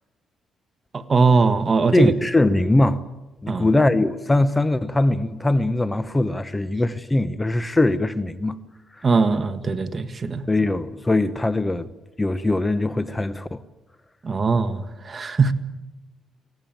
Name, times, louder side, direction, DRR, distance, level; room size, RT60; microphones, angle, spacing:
voice 1, 0.9-2.1 3.5-3.7 9.0-10.5 14.2-15.5, right 4 dB, 35° right, 1.6 m, -20 dB
voice 2, 1.9-3.0 3.4-8.6 9.0-9.1 10.5-11.9 12.2-13.6, left 2 dB, 15° left, 1.0 m, -21 dB
23.5 x 18.0 x 9.2 m
cardioid pair, 90°, 0 cm